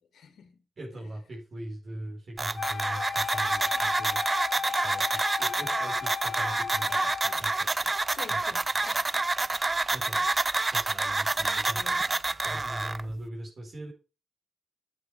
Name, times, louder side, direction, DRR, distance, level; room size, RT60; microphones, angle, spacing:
voice 1, 0.1-0.6 3.8-3.9 5.7-5.9 8.1-9.2 11.3-11.4 11.7-12.3 12.9-13.0, left 7 dB, 80° left, 1.9 m, -49 dB
voice 2, 0.8-4.6 4.8-7.9 8.3-8.6 9.6-10.2 10.7-13.9, right 1 dB, 45° right, 4.6 m, -41 dB
sound 1, 2.4-13.0, right 3 dB, 25° right, 0.5 m, -28 dB
Wind instrument woodwind instrument, 2.5-7.4, left 7 dB, 55° left, 1.0 m, -35 dB
9.7 x 8.1 x 5.0 m
cardioid pair, 95°, 0 cm